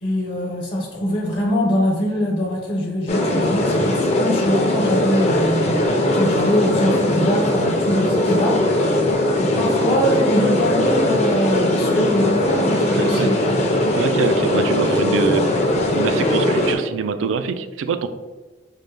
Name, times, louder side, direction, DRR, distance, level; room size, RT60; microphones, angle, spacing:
voice 1, 0.0-5.8 6.1-13.6, left 1 dB, 60° left, -4 dB, 1.0 m, -23 dB
sound 1, 3.1-16.8, left 1 dB, 35° left, 0.5 m, -19 dB
voice 2, 13.0-13.3 14.0-15.5 16.0-18.1, right 5 dB, 85° right, 10 dB, 0.3 m, -24 dB
5.5 x 2.1 x 3.3 m, 1.2 s
head